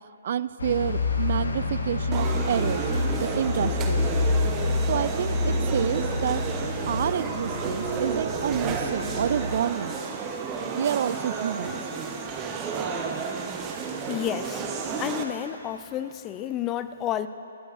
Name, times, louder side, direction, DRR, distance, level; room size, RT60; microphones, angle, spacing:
voice 1, 0.2-2.8 3.2-4.0 4.9-6.4 6.9-10.0 10.7-11.8, right 9 dB, 50° right, 16 dB, 0.3 m, -28 dB
sound 1, 0.6-9.6, left 3 dB, 65° left, 1.5 m, -28 dB
sound 2, 2.1-15.2, right 5 dB, 20° right, 1.0 m, -31 dB
voice 2, 14.1-14.6 15.0-17.3, left 11 dB, 20° left, 12 dB, 0.4 m, -30 dB
23.0 x 11.5 x 2.6 m, 2.8 s
figure-of-eight pair, 130°, 0 cm